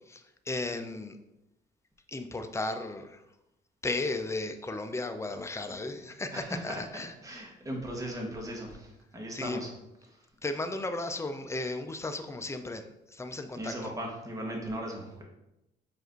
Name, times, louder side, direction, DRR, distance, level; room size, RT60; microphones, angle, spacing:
voice 1, 0.1-1.2 2.1-3.2 3.8-7.1 9.3-9.6 10.4-12.8 13.1-13.9, left 2 dB, 15° left, 8 dB, 0.4 m, -35 dB
voice 2, 6.3-9.7 10.1-10.2 13.5-15.2, right 1 dB, 15° right, -1 dB, 1.1 m, -38 dB
4.7 x 2.6 x 4.4 m, 0.90 s
cardioid pair, 90°, 20 cm